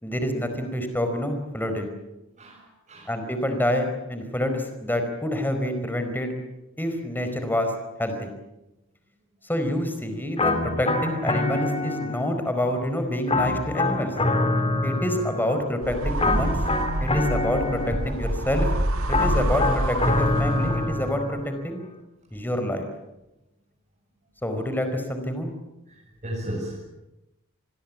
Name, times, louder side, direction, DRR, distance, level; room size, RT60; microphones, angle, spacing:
voice 1, 0.0-1.9 3.1-6.3 6.8-7.7 8.0-8.3 9.4-14.1 14.8-16.6 17.0-18.7 19.1-21.8 22.3-22.8 24.4-25.5, left 1 dB, 10° left, 7 dB, 4.6 m, -27 dB
voice 2, 2.3-3.2 19.0-19.1 25.9-26.8, right 1 dB, 35° right, -3 dB, 7.8 m, -35 dB
sound 1, 10.4-12.5 13.3-15.7 16.2-18.3 19.1-21.5, left 2 dB, 25° left, 3.7 m, -25 dB
sound 2, 15.8-21.1, right 1 dB, 75° right, 2.1 m, -27 dB
28.5 x 21.5 x 8.6 m, 0.94 s
head